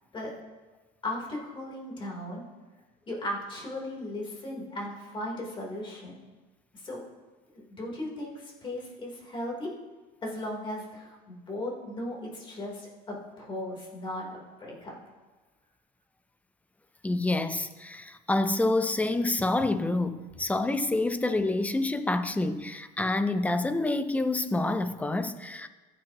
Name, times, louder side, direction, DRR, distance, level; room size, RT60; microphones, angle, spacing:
voice 1, 1.0-2.4 3.1-6.2 6.8-7.0 7.5-9.7 10.2-15.0, left 1 dB, 25° left, 3.5 m, -37 dB
voice 2, 17.0-25.7, left 2 dB, 5° left, 0.5 m, -27 dB
20.5 x 9.2 x 3.0 m
cardioid pair, 160°, 19 cm